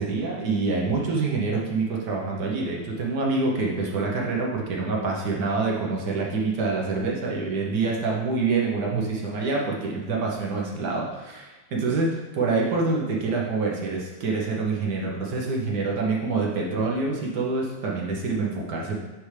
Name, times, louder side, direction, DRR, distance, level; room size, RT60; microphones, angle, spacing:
voice 1, 0.0-19.0, right 3 dB, 60° right, -2 dB, 1.6 m, -26 dB
9.7 x 3.6 x 3.2 m, 1.2 s
omnidirectional pair, 2.1 m